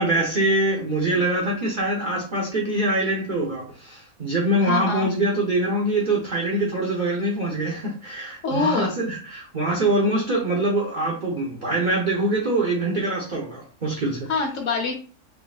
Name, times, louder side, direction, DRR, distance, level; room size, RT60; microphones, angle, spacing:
voice 1, 0.0-14.3, right 1 dB, 40° right, -3 dB, 0.8 m, -24 dB
voice 2, 4.6-5.1 8.4-9.0 14.3-14.9, left 4 dB, 60° left, 3 dB, 1.1 m, -25 dB
3.7 x 3.6 x 2.3 m, 0.38 s
omnidirectional pair, 1.6 m